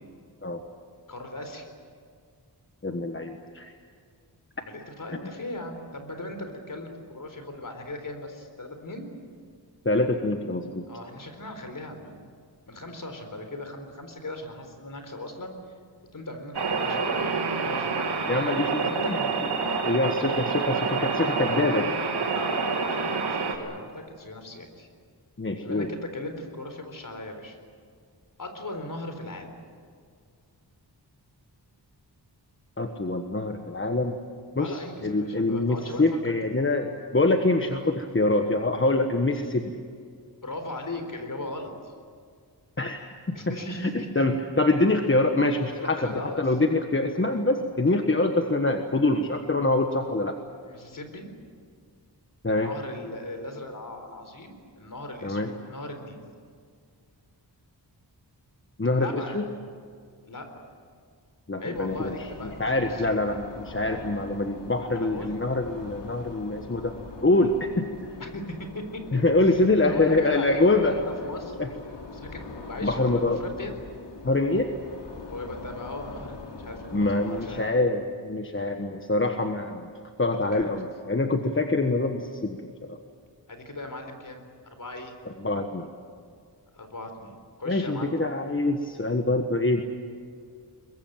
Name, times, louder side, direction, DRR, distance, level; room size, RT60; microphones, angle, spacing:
voice 1, 1.1-1.7 4.6-9.1 10.9-12.2 12.7-15.5 16.1-17.3 17.6-18.2 18.8-19.1 19.6-20.0 20.4-20.5 22.2-24.9 25.6-27.6 28.4-29.6 34.6-36.3 40.4-41.9 43.3-44.2 45.8-46.4 50.6-51.3 52.6-56.2 59.0-59.4 60.3-60.5 61.6-63.1 64.9-65.4 68.2-69.2 69.8-73.8 75.3-77.6 80.3-80.7 83.5-85.2 86.7-88.3, left 2 dB, 50° left, 6 dB, 4.1 m, -38 dB
voice 2, 2.8-3.7 9.8-10.9 18.3-19.2 19.8-21.9 25.4-25.9 32.8-34.2 34.5-39.7 42.8-43.1 43.8-43.9 44.1-50.4 52.4-52.7 55.2-55.5 58.8-59.4 61.5-62.3 62.6-66.9 67.2-67.9 69.1-70.9 71.6-71.7 72.8-73.4 74.2-74.7 76.9-79.9 80.2-83.0 85.4-85.9 87.7-89.8, left 2 dB, 30° left, 5 dB, 1.4 m, -25 dB
sound 1, 16.5-23.6, right 4 dB, 70° right, 2.7 m, -27 dB
sound 2, 61.7-77.7, left 3 dB, 75° left, 3.0 m, -42 dB
23.0 x 22.0 x 9.0 m, 2.1 s
wide cardioid pair, 115°, 42 cm